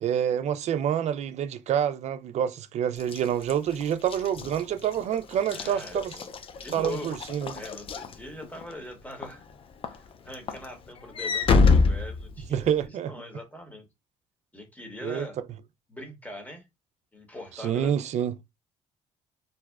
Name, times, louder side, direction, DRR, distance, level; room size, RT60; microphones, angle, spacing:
voice 1, 0.0-6.1 6.7-7.6 12.5-13.1 15.0-15.3 17.6-18.3, right 9 dB, 55° right, 0.4 m, -27 dB
Walk footsteps / Slam, 3.0-8.7 9.2-9.5 9.8-12.8, left 4 dB, 40° left, 0.4 m, -27 dB
voice 2, 5.4-6.3 6.6-7.2 7.5-9.5 9.9-13.9 14.5-15.4 15.9-16.6 17.1-18.0, left 1 dB, 10° left, 1.0 m, -42 dB
2.6 x 2.1 x 2.3 m
supercardioid pair, 75°, 14 cm